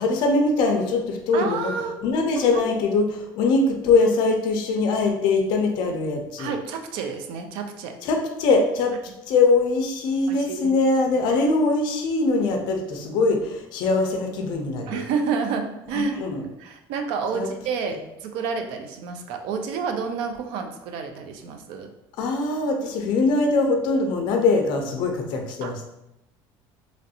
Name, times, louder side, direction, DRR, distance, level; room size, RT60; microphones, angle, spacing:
voice 1, 0.0-1.7 2.0-6.5 8.0-9.0 9.3-15.0 15.9-16.4 17.3-17.5 17.9-18.0 22.2-25.8, left 3 dB, 50° left, 3 dB, 0.5 m, -22 dB
voice 2, 1.3-1.9 2.5-2.6 6.4-7.9 10.3-10.7 14.9-16.2 16.6-21.9 25.6-25.7, right 5 dB, 60° right, 6 dB, 0.4 m, -29 dB
3.0 x 2.5 x 2.7 m, 0.88 s
cardioid pair, 175°, 10 cm